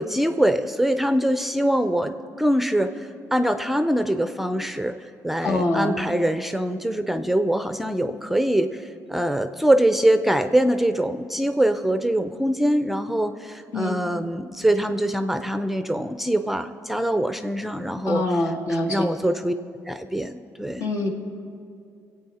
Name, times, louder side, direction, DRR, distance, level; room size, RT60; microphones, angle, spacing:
voice 1, 0.0-18.2 18.7-19.5 19.9-20.9, right 1 dB, 5° right, 9 dB, 0.5 m, -23 dB
voice 2, 5.4-6.0 13.7-14.0 18.1-19.1 20.8-21.1, left 2 dB, 70° left, 2 dB, 1.8 m, -24 dB
23.0 x 8.4 x 4.3 m, 2.4 s
cardioid pair, 100°, 7 cm